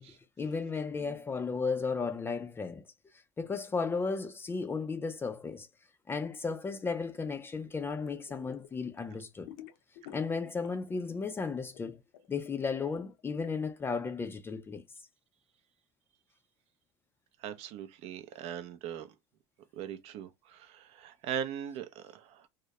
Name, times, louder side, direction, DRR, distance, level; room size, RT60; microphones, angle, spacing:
voice 1, 0.0-2.8 3.4-5.7 6.1-9.5 10.1-12.0 12.3-14.8, left 4 dB, 15° left, 0.4 m, -34 dB
sound 1, 8.0-8.7 9.0-11.0 11.3-13.5, left 11 dB, 80° left, 0.6 m, -50 dB
voice 2, 17.4-19.1 19.7-22.5, right 9 dB, 55° right, 0.5 m, -40 dB
2.2 x 2.0 x 2.8 m
supercardioid pair, 110°, 13 cm